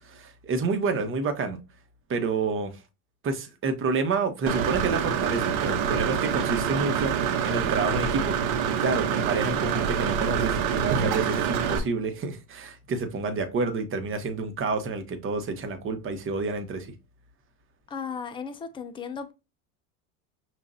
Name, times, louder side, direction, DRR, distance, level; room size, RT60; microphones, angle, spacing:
voice 1, 0.1-1.6 2.1-2.7 3.2-8.4 8.8-16.9, right 4 dB, 30° right, 1.0 m, -29 dB
Engine / Mechanisms, 4.5-11.8, right 7 dB, 65° right, 1.0 m, -26 dB
voice 2, 17.9-19.3, left 6 dB, 15° left, 0.3 m, -35 dB
5.9 x 2.4 x 2.6 m
supercardioid pair, 115°, 45 cm